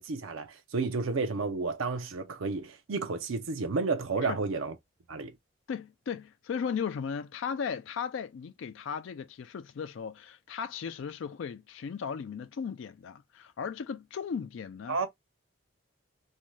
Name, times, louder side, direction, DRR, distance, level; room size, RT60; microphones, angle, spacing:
voice 1, 0.0-4.7 5.1-5.3 14.9-15.1, right 4 dB, 75° right, 0.5 m, -31 dB
voice 2, 5.7-15.0, left 6 dB, 65° left, 0.3 m, -36 dB
2.7 x 2.2 x 3.1 m
head